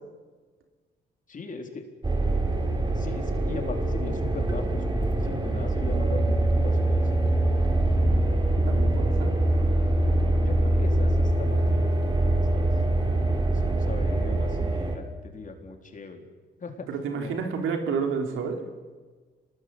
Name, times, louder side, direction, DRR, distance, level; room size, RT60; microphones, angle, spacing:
voice 1, 1.3-1.8 3.0-7.2 10.3-12.7 13.5-16.3 16.6-16.9 17.1-17.4, left 4 dB, 40° left, 4 dB, 4.1 m, -39 dB
sound 1, 2.0-15.0, right 1 dB, 20° right, 3.9 m, -24 dB
voice 2, 8.7-9.3 16.9-18.6, right 5 dB, 85° right, 4 dB, 3.5 m, -29 dB
25.5 x 20.5 x 8.2 m, 1.4 s
cardioid pair, 90°, 20 cm